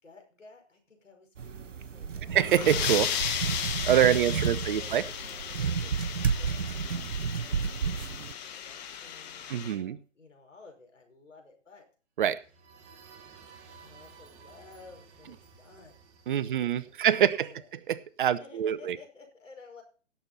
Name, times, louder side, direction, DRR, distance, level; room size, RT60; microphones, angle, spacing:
voice 1, 0.0-2.4 3.9-7.7 8.4-11.9 13.8-16.0 16.3-17.7 18.3-19.8, left 4 dB, 85° left, 3 dB, 5.4 m, -53 dB
sound 1, 1.4-8.3, right 6 dB, 90° right, 0.8 m, -32 dB
sound 2, 2.3-9.7, left 9 dB, 35° left, 1.8 m, -35 dB
voice 2, 2.3-3.1 3.8-5.0 9.5-10.0 12.2-12.4 16.3-17.5 17.9-19.0, right 10 dB, 45° right, 16 dB, 0.8 m, -25 dB
sound 3, 12.3-18.0, right 5 dB, 30° right, 1.9 m, -55 dB
17.5 x 7.1 x 4.1 m, 0.38 s
figure-of-eight pair, 130°, 37 cm